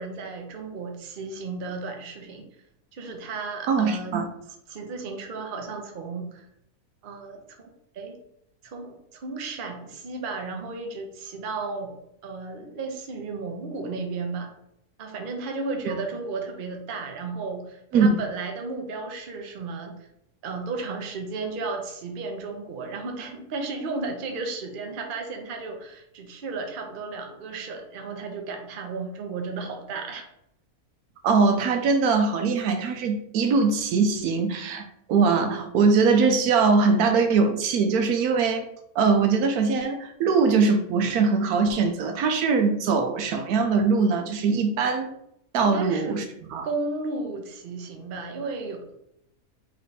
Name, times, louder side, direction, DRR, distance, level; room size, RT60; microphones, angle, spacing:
voice 1, 0.0-2.5 2.9-4.2 4.7-6.4 7.0-8.1 8.6-12.0 12.2-14.5 15.0-20.0 20.4-30.2 45.6-46.2 46.6-49.0, right 3 dB, 45° right, 3 dB, 0.7 m, -34 dB
voice 2, 3.7-4.3 17.9-18.2 31.2-38.6 38.9-45.1 45.5-46.2 46.5-46.7, right 4 dB, 80° right, 6 dB, 1.1 m, -22 dB
3.5 x 3.2 x 4.0 m, 0.77 s
omnidirectional pair, 1.6 m